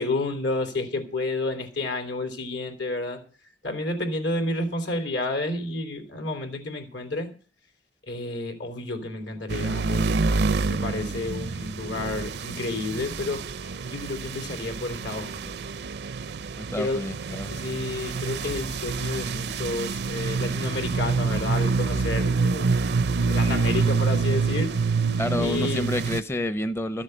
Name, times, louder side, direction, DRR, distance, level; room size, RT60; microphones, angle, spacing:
voice 1, 0.0-3.2 3.6-7.3 8.1-10.2 10.6-15.6 16.8-17.0 17.4-22.7 23.2-24.7 25.4-25.8, left 2 dB, 85° left, 3.2 m, -30 dB
sound 1, 9.5-26.2, right 4 dB, 65° right, 0.5 m, -27 dB
voice 2, 16.6-17.5 25.1-27.0, left 1 dB, 15° left, 0.5 m, -29 dB
13.5 x 7.4 x 7.8 m
head